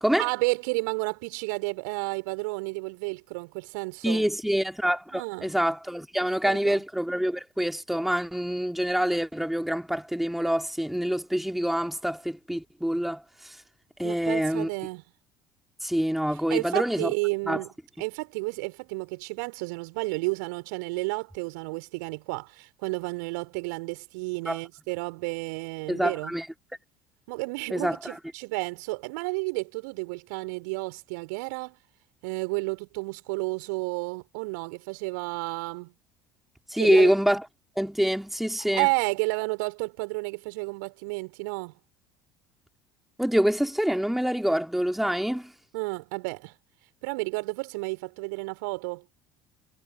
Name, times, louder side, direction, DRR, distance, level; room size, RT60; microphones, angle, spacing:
voice 1, 0.2-4.2 5.1-5.5 6.4-6.8 14.0-15.0 16.5-17.7 18.0-26.3 27.3-31.8 32.2-35.9 36.8-37.1 38.7-41.7 45.7-46.5 47.0-49.0, right 28 dB, 60° right, 5.2 m, -31 dB
voice 2, 4.0-13.6 14.0-14.7 15.8-17.1 17.5-17.6 24.5-24.6 25.9-26.5 27.7-28.1 36.7-37.4 37.8-38.9 43.2-45.5, equal, ahead, 2.9 m, -26 dB
figure-of-eight pair, 60°, 11 cm